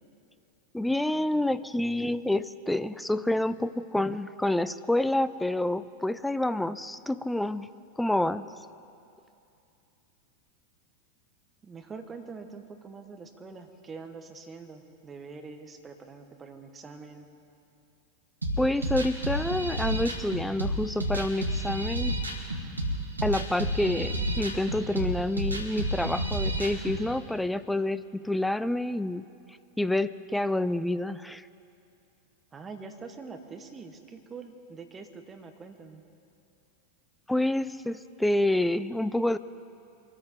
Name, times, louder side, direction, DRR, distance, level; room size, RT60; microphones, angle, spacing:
voice 1, 0.7-7.7 8.0-8.5 18.6-22.2 23.2-29.2 29.8-31.5 37.3-39.4, left 1 dB, 5° left, 14 dB, 0.4 m, -28 dB
voice 2, 11.6-17.3 32.5-36.1, right 4 dB, 20° right, 6 dB, 1.5 m, -44 dB
sound 1, 18.4-27.0, right 1 dB, 90° right, 1.6 m, -30 dB
24.5 x 13.5 x 3.8 m, 2.6 s
figure-of-eight pair, 90°, 0 cm